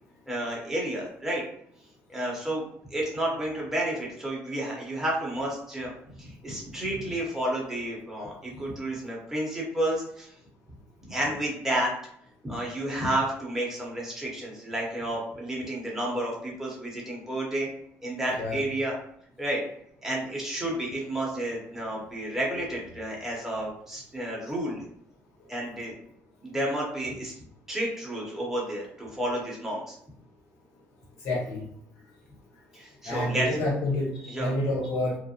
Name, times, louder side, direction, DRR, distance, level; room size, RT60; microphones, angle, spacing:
voice 1, 0.3-1.4 2.1-2.6 2.9-5.9 6.2-10.3 11.0-11.9 12.4-17.7 18.0-19.0 19.4-19.6 20.0-24.8 25.5-25.9 26.4-27.3 27.7-29.9 32.7-33.7 34.2-34.5, right 1 dB, 5° right, -4 dB, 1.0 m, -31 dB
voice 2, 31.2-31.6 33.0-34.1 34.4-35.2, left 1 dB, 70° left, -4 dB, 1.3 m, -28 dB
2.5 x 2.1 x 2.8 m, 0.71 s
cardioid pair, 110°, 5 cm